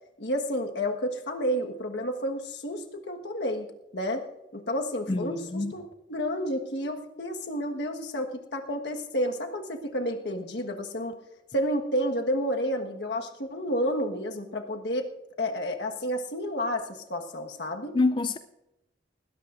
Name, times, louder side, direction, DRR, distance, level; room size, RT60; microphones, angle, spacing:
voice 1, 0.2-3.7 3.9-4.2 4.5-11.1 11.5-15.1 15.4-18.0, equal, 75° left, 1.5 m, -30 dB
voice 2, 5.1-5.7 17.9-18.4, left 3 dB, 25° left, 0.4 m, -26 dB
20.0 x 16.5 x 2.6 m
head